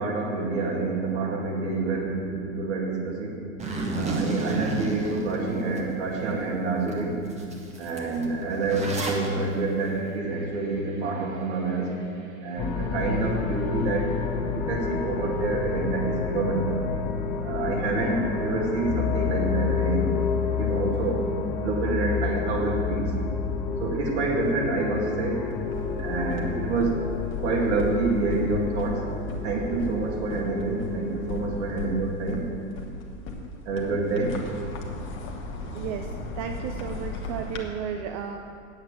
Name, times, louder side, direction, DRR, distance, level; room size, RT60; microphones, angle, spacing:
voice 1, 0.0-3.4 3.9-7.2 7.8-14.2 14.5-16.7 17.4-20.1 20.6-21.3 21.6-23.1 23.8-25.4 26.0-27.0 27.4-29.1 29.4-32.5 33.6-34.5 35.7-35.9, right 3 dB, 55° right, -1 dB, 2.4 m, -27 dB
Zipper (clothing), 3.6-5.8 6.3-6.4 6.9-7.0 7.2-9.3, right 2 dB, 15° right, 1.3 m, -31 dB
sound 1, 12.6-31.9, left 6 dB, 15° left, 0.3 m, -30 dB
sound 2, 25.4-37.6, left 2 dB, 30° left, 1.4 m, -38 dB
voice 2, 35.7-38.4, right 8 dB, 35° right, 5 dB, 0.6 m, -34 dB
9.2 x 8.0 x 7.0 m, 2.3 s
figure-of-eight pair, 90°, 40 cm